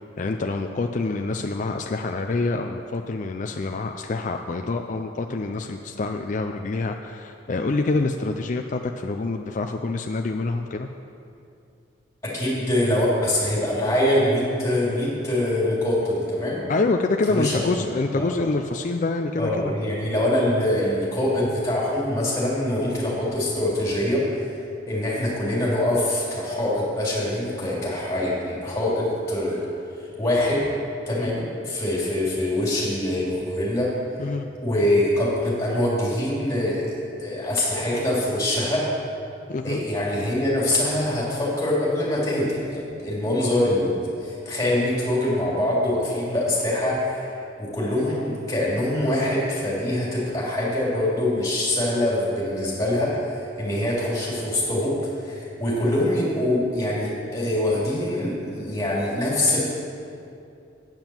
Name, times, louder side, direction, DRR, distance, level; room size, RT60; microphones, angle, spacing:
voice 1, 0.2-10.9 16.7-19.7 34.2-34.5 39.5-39.8, left 3 dB, 40° left, 4 dB, 0.4 m, -26 dB
voice 2, 12.2-16.6 17.3-17.9 18.2-18.3 19.4-24.4 24.9-29.6 30.2-30.7 31.1-33.9 34.6-38.9 39.6-59.6, left 1 dB, 15° left, -6 dB, 3.0 m, -24 dB
8.9 x 7.8 x 7.2 m, 2.6 s
head